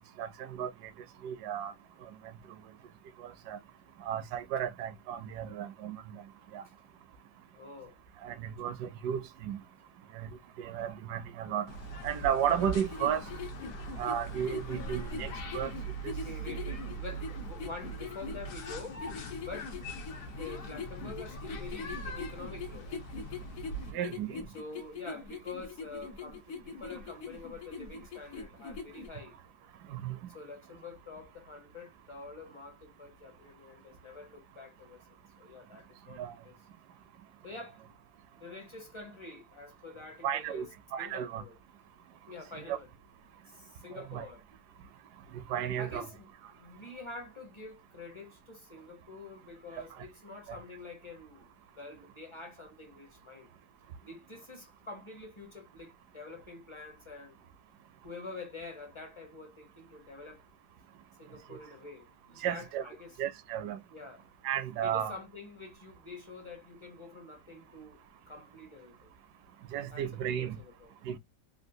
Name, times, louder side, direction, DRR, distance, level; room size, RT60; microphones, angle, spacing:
voice 1, 0.2-0.7 1.2-1.7 3.2-3.6 4.1-6.0 6.5-6.6 8.2-9.6 10.1-10.3 10.6-11.7 12.0-13.2 14.0-15.7 16.0-16.1 23.9-24.4 29.9-30.2 36.2-36.3 40.2-40.7 40.9-41.4 42.7-42.8 43.9-44.3 45.5-46.1 50.5-50.6 62.4-62.8 63.2-63.8 64.4-65.1 69.7-70.6 71.0-71.2, right 9 dB, 80° right, 1.1 m, -33 dB
voice 2, 7.5-8.0 16.2-19.1 19.4-19.7 20.4-22.9 24.5-29.4 30.3-35.1 35.4-36.6 37.4-40.7 41.0-41.6 42.3-42.9 43.5-44.4 45.8-51.5 51.7-53.5 54.0-57.4 58.0-60.4 61.2-63.1 63.9-64.2 64.8-69.1 69.9-70.9, left 3 dB, 30° left, 0.5 m, -47 dB
sound 1, 11.7-23.9, right 2 dB, 90° left, 1.4 m, -41 dB
sound 2, 12.6-29.1, left 5 dB, 65° left, 1.0 m, -42 dB
3.5 x 2.4 x 2.6 m
omnidirectional pair, 1.7 m